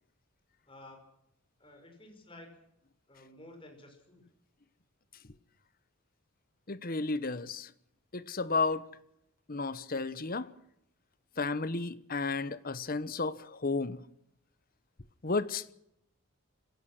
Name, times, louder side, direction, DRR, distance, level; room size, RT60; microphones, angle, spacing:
voice 1, 0.7-1.0 1.6-2.5 3.1-4.2, left 1 dB, 25° left, 5.8 m, -52 dB
voice 2, 6.7-7.7 8.1-8.9 9.5-10.5 11.4-14.0 15.2-15.7, left 3 dB, 40° left, 1.1 m, -33 dB
26.0 x 17.5 x 6.2 m
head